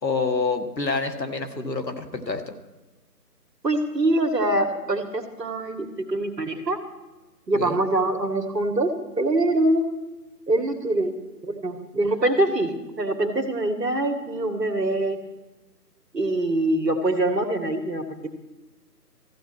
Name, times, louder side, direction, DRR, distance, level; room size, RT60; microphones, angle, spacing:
voice 1, 0.0-2.5 7.5-7.8, left 4 dB, 85° left, 7 dB, 1.7 m, -27 dB
voice 2, 3.6-6.8 7.5-10.0 10.5-11.1 11.4-15.2 16.1-18.3, right 1 dB, 75° right, 6 dB, 1.9 m, -24 dB
14.5 x 8.6 x 6.1 m, 1.1 s
figure-of-eight pair, 155°, 49 cm